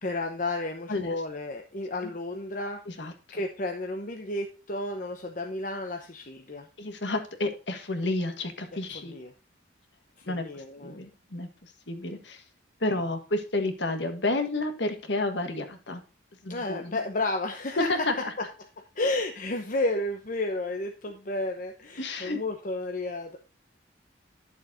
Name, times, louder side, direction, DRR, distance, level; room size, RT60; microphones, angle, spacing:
voice 1, 0.0-6.7 8.9-9.3 10.2-11.0 16.5-18.0 18.6-23.4, left 2 dB, 45° left, 3 dB, 0.9 m, -32 dB
voice 2, 0.9-1.2 2.9-3.1 6.8-9.1 10.2-12.4 12.8-16.0 16.4-17.0 17.8-18.3 22.0-22.4, left 2 dB, 60° left, 6 dB, 1.6 m, -31 dB
11.0 x 7.3 x 2.7 m, 0.33 s
head